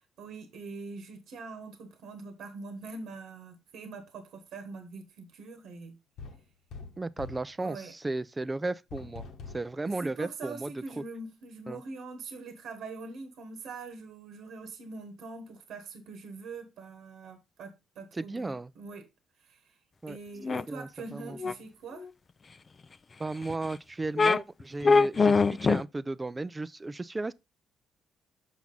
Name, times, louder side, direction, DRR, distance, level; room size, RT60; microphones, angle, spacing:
voice 1, 0.2-6.0 7.6-7.9 9.8-19.1 19.4-19.8 20.1-22.1, right 3 dB, 75° right, 1.2 m, -43 dB
sound 1, 6.2-7.5 8.9-9.7, left 4 dB, 75° left, 1.3 m, -44 dB
voice 2, 7.0-9.2 9.5-11.0 11.7-11.8 18.1-18.7 20.0-20.2 20.5-21.4 23.2-27.3, right 2 dB, 20° right, 0.5 m, -35 dB
sound 2, 20.4-20.6 21.4-21.5 22.0-22.1 23.4-23.5 24.2-24.4 24.8-25.8, left 4 dB, 35° left, 0.4 m, -22 dB
6.0 x 5.9 x 3.9 m
supercardioid pair, 75°, 0 cm